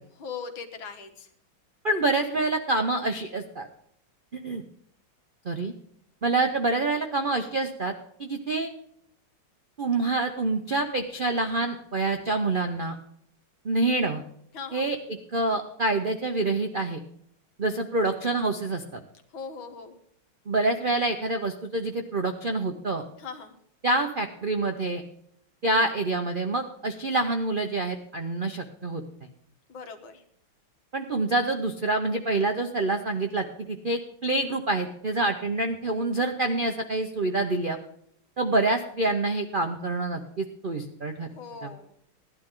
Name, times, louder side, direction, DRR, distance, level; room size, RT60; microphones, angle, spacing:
voice 1, 0.2-1.3 14.5-14.9 19.3-20.0 23.2-23.6 29.7-30.2 41.4-41.9, left 5 dB, 75° left, 6 dB, 2.1 m, -39 dB
voice 2, 1.8-3.7 4.3-4.6 5.4-5.7 6.2-7.9 8.2-8.7 9.8-13.0 13.6-14.2 14.7-15.0 15.3-17.0 17.6-19.0 20.5-23.0 23.8-25.0 25.6-29.0 30.9-37.8 38.4-41.3 41.6-41.7, right 2 dB, 70° right, 5 dB, 0.5 m, -27 dB
16.5 x 11.0 x 3.7 m, 0.69 s
omnidirectional pair, 2.2 m